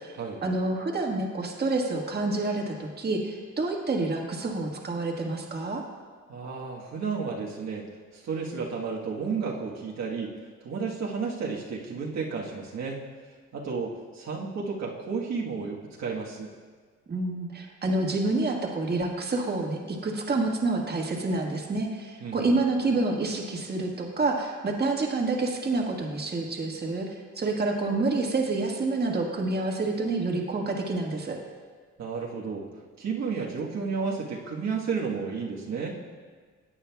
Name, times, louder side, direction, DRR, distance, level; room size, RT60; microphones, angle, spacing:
voice 1, 0.0-5.8 17.1-31.4, right 2 dB, 35° right, 0 dB, 1.6 m, -28 dB
voice 2, 6.3-10.3 10.6-13.0 13.5-16.5 22.2-22.5 32.0-32.7 33.0-35.9, right 5 dB, 60° right, -3 dB, 1.4 m, -32 dB
17.5 x 8.8 x 2.3 m, 1.5 s
cardioid pair, 90°, 30 cm